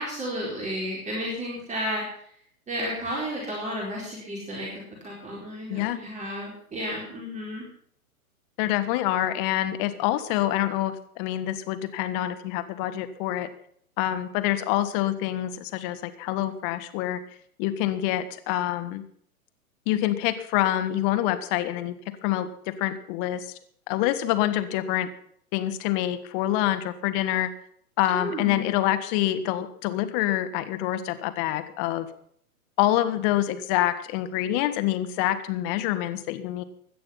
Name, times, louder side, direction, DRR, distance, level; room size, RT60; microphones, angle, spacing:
voice 1, 0.0-2.2 2.7-7.7 28.1-28.6, equal, 15° right, -3 dB, 4.5 m, -32 dB
voice 2, 8.6-13.5 14.0-17.2 17.6-19.0 19.8-21.9 22.2-23.5 23.9-25.1 25.5-27.5 28.0-32.1 32.8-36.6, left 13 dB, 35° left, 11 dB, 1.6 m, -26 dB
17.0 x 11.5 x 5.8 m, 0.64 s
hypercardioid pair, 120°, 45 cm